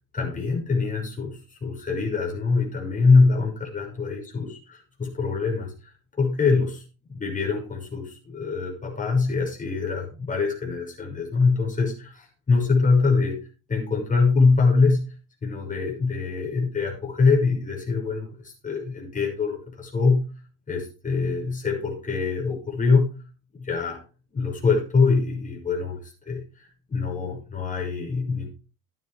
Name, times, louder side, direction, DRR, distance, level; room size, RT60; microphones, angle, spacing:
voice 1, 0.1-5.9 6.2-6.8 7.1-13.4 13.7-15.1 15.4-20.2 20.7-23.1 23.5-24.0 24.3-28.5, left 4 dB, 20° left, 1 dB, 5.8 m, -24 dB
13.0 x 9.5 x 3.4 m, 0.32 s
supercardioid pair, 110°, 35 cm